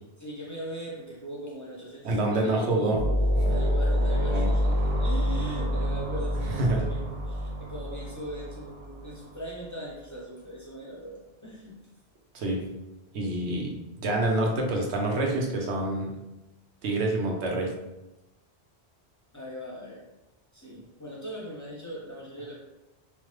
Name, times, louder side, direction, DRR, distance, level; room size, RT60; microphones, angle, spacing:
voice 1, 0.2-2.8 3.5-11.8 19.3-20.1 20.5-22.6, equal, 25° left, -5 dB, 0.5 m, -40 dB
voice 2, 2.0-3.0 3.3-3.4 4.3-4.5 6.5-6.8 12.3-12.6 13.1-13.7 14.0-16.1 16.8-17.7, right 2 dB, 80° right, 0 dB, 0.9 m, -27 dB
sound 1, 2.9-9.4, equal, 50° right, 0.4 m, -27 dB
3.1 x 2.1 x 3.1 m, 0.99 s
omnidirectional pair, 1.1 m